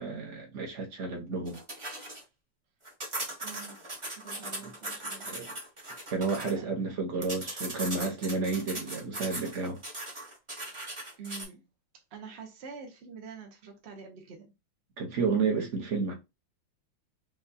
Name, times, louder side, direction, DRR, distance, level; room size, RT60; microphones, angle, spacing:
voice 1, 0.0-1.6 4.6-4.7 5.3-5.5 6.1-9.8 15.0-16.1, right 4 dB, 50° right, 0.9 m, -31 dB
sound 1, 1.5-2.2 2.8-6.5 7.2-11.4, right 2 dB, 30° right, 0.6 m, -39 dB
voice 2, 3.4-3.8 4.1-5.3 6.5-6.7 11.2-11.7 12.1-14.5, right 5 dB, 75° right, 0.6 m, -46 dB
5.6 x 2.3 x 2.7 m
omnidirectional pair, 2.3 m